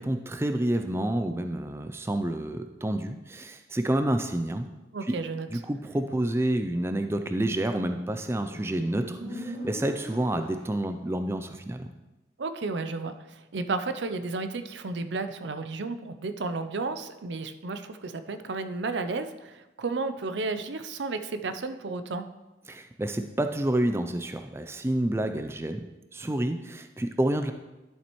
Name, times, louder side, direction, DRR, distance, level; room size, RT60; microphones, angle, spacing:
voice 1, 0.0-4.7 5.1-5.2 5.5-11.9 22.7-25.8 26.1-27.5, right 1 dB, 15° right, 7 dB, 0.4 m, -29 dB
voice 2, 4.9-5.5 12.4-22.3, right 3 dB, 80° right, 9 dB, 0.6 m, -33 dB
Motorcycle, 7.8-11.1, equal, 35° right, 1.9 m, -41 dB
11.5 x 7.3 x 3.1 m, 1.1 s
head